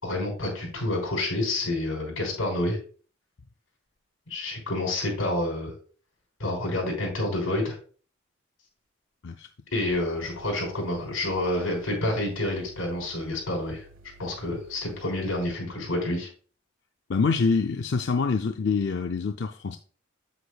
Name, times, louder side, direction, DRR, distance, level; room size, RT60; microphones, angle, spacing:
voice 1, 0.0-2.8 4.3-5.7 6.4-7.8 9.7-13.8 14.2-16.3, left 1 dB, 90° left, 3.8 m, -28 dB
sound 1, 9.9-15.5, right 2 dB, 75° right, 1.2 m, -53 dB
voice 2, 17.1-19.8, left 4 dB, 55° left, 0.4 m, -25 dB
8.2 x 8.0 x 2.3 m
head